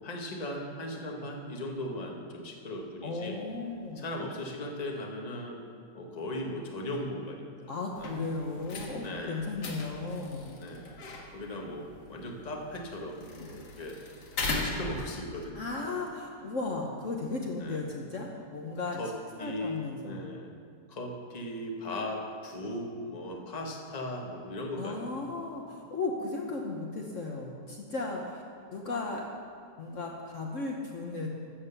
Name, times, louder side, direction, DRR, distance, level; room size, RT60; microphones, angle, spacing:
voice 1, 0.0-3.4 4.0-5.6 5.9-7.7 8.0-8.1 9.0-9.5 10.5-10.8 11.3-14.0 14.5-15.7 17.6-17.8 19.0-19.1 19.4-20.5 20.9-25.3, left 1 dB, 25° left, 0 dB, 1.3 m, -38 dB
voice 2, 3.0-4.1 7.7-10.5 13.4-13.5 15.5-19.0 19.4-20.3 24.7-28.4 28.7-29.3 29.8-31.3, left 3 dB, 50° left, 0 dB, 1.3 m, -35 dB
sound 1, 7.9-15.4, left 3 dB, 85° left, 2.0 m, -39 dB
13.5 x 8.0 x 6.8 m, 2.3 s
omnidirectional pair, 1.8 m